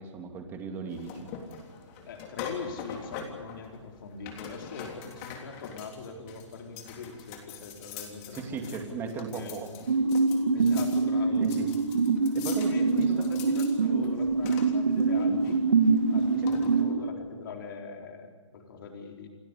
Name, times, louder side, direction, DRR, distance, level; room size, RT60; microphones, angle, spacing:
voice 1, 0.0-1.3 8.3-9.7 11.4-11.7 12.3-13.3 16.4-16.5, right 5 dB, 15° right, 4 dB, 2.5 m, -37 dB
sound 1, 0.9-16.8, left 6 dB, 25° left, 3.4 m, -44 dB
voice 2, 2.0-9.6 10.5-11.5 12.5-15.6 16.1-19.3, left 5 dB, 45° left, 2 dB, 4.1 m, -42 dB
sound 2, 9.9-17.1, right 4 dB, 70° right, 1.7 m, -25 dB
29.0 x 13.5 x 8.2 m, 1.5 s
hypercardioid pair, 155°, 16 cm